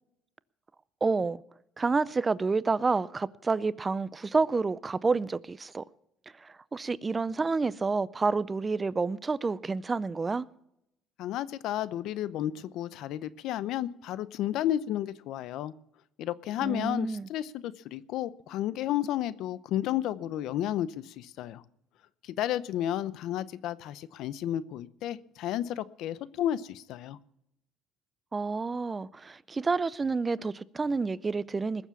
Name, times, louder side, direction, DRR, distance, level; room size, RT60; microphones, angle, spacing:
voice 1, 1.0-1.4 1.8-5.8 6.4-10.5 16.6-17.3 28.3-31.9, right 4 dB, 25° right, 0.4 m, -29 dB
voice 2, 11.2-15.7 16.2-21.6 22.2-27.2, left 12 dB, 70° left, 0.7 m, -32 dB
20.5 x 7.2 x 7.0 m
cardioid pair, 105°, 0 cm